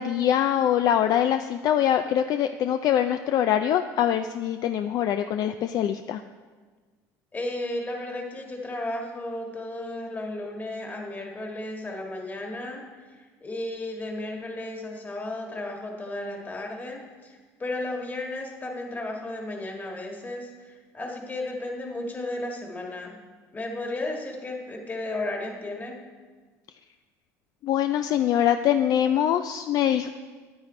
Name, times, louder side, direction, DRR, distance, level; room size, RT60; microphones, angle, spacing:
voice 1, 0.0-6.2 27.6-30.1, left 10 dB, 55° left, 8 dB, 0.3 m, -23 dB
voice 2, 7.3-12.8 13.4-23.2 23.5-26.0, left 2 dB, 25° left, 1 dB, 1.6 m, -34 dB
9.1 x 9.0 x 3.2 m, 1.4 s
supercardioid pair, 95°, 8 cm